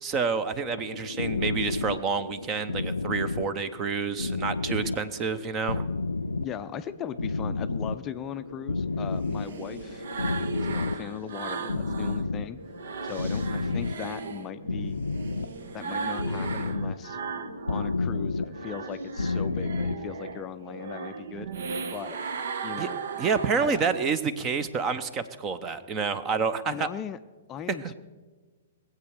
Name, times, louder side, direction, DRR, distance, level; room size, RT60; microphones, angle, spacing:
voice 1, 0.0-5.8 22.8-22.9 23.2-26.9 27.8-27.9, right 5 dB, 25° right, 13 dB, 0.9 m, -28 dB
sound 1, 0.6-20.5, left 3 dB, 80° left, 0.5 m, -32 dB
voice 2, 6.4-10.1 10.5-12.6 13.0-15.0 15.7-17.2 17.7-21.5 21.9-22.2 22.6-23.0 23.6-23.8 26.6-27.2 27.5-27.9, left 9 dB, 25° left, 10 dB, 0.5 m, -38 dB
sound 2, 8.8-12.2 12.6-18.0 18.4-24.2, right 5 dB, 60° right, 1.0 m, -37 dB
20.5 x 8.1 x 6.6 m, 1.3 s
figure-of-eight pair, 110°, 0 cm